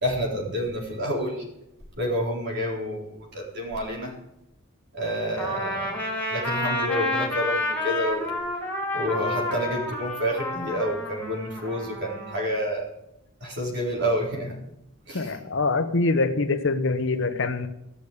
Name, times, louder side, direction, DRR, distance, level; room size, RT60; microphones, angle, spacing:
voice 1, 0.0-1.4 2.0-4.1 4.9-6.0 6.3-8.3 8.9-12.9 13.4-14.6 15.1-15.3, equal, 55° right, -1 dB, 4.0 m, -29 dB
Trumpet, 5.4-12.5, left 1 dB, 10° left, 2.5 m, -30 dB
voice 2, 15.1-17.7, left 3 dB, 60° left, 9 dB, 1.0 m, -24 dB
15.5 x 6.7 x 8.4 m, 0.84 s
head